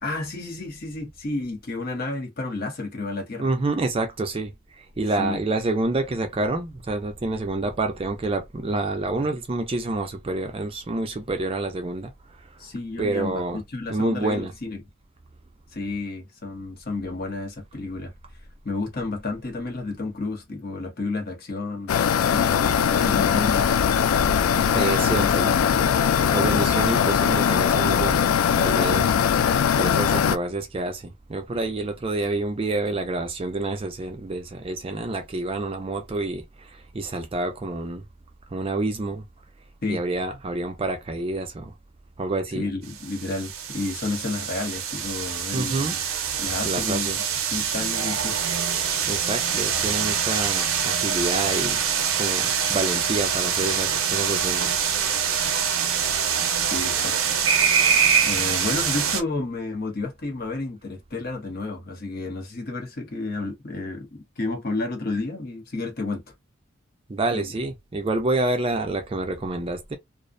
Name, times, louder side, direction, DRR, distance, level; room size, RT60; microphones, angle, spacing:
voice 1, 0.0-3.5 5.2-5.4 12.6-14.8 15.7-18.1 18.6-21.9 22.2-23.7 24.5-25.8 39.8-40.0 42.5-46.0 46.4-47.1 47.5-48.4 56.7-57.2 58.3-66.2 67.3-67.5, left 3 dB, 45° left, 0.7 m, -31 dB
voice 2, 3.4-12.5 13.0-13.6 13.9-14.5 24.7-25.6 26.3-29.1 29.7-38.0 38.5-39.2 39.9-41.7 42.2-42.6 45.5-45.9 46.6-47.2 49.1-51.8 52.1-54.7 67.1-70.0, right 2 dB, 25° right, 0.4 m, -28 dB
sound 1, 21.9-30.4, left 8 dB, 85° left, 0.3 m, -20 dB
sound 2, 42.9-59.2, right 7 dB, 90° right, 0.6 m, -24 dB
2.4 x 2.0 x 2.5 m
head